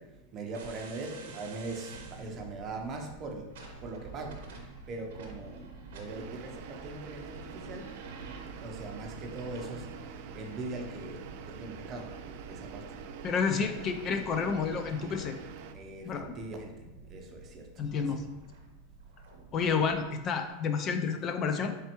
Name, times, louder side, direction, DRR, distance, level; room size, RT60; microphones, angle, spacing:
voice 1, 0.0-8.0 8.6-13.0 15.7-18.2, right 2 dB, 35° right, 3 dB, 0.6 m, -41 dB
sound 1, 0.5-20.2, right 3 dB, 75° right, 0.7 m, -48 dB
sound 2, 6.1-15.7, right 8 dB, 60° right, 0.3 m, -47 dB
voice 2, 13.2-15.3 16.0-16.3 17.8-18.2 19.5-21.7, left 5 dB, 35° left, 7 dB, 0.3 m, -30 dB
4.2 x 3.3 x 2.9 m, 1.0 s
supercardioid pair, 135°, 0 cm